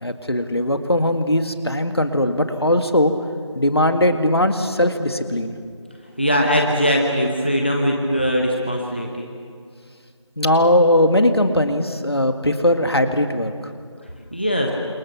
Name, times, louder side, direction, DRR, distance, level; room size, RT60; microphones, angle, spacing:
voice 1, 0.0-3.1 3.6-5.5 10.4-13.5, left 1 dB, 55° left, 7 dB, 2.1 m, -19 dB
voice 2, 6.2-9.3 14.3-14.7, equal, 20° left, 0 dB, 1.3 m, -20 dB
30.0 x 27.5 x 6.1 m, 2.1 s
figure-of-eight pair, 180°, 16 cm